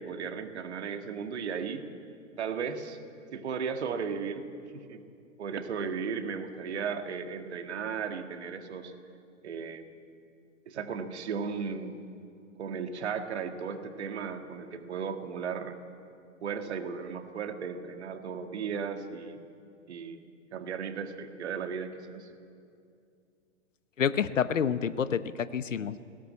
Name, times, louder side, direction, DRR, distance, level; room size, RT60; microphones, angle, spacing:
voice 1, 0.0-1.9 2.4-3.0 3.3-4.5 4.7-5.0 5.4-8.9 9.4-9.8 10.7-12.0 12.6-15.8 16.4-19.5 19.9-20.2 20.5-22.3, right 6 dB, 55° right, 7 dB, 1.8 m, -35 dB
voice 2, 24.0-26.0, left 7 dB, 70° left, 15 dB, 0.9 m, -28 dB
20.0 x 17.0 x 8.6 m, 2.5 s
figure-of-eight pair, 110°, 39 cm